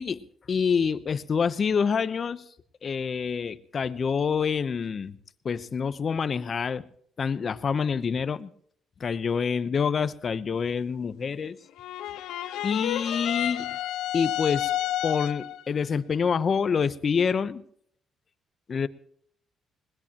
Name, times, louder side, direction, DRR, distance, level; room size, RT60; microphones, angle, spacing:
voice 1, 0.0-2.4 2.8-5.2 5.4-6.9 7.2-8.5 9.0-11.6 12.6-13.8 14.1-14.7 15.0-17.6 18.7-18.9, left 6 dB, 45° left, 13 dB, 0.9 m, -27 dB
sound 1, 11.8-15.6, left 13 dB, 90° left, 0.6 m, -30 dB
21.0 x 19.0 x 3.0 m, 0.63 s
cardioid pair, 90°, 0 cm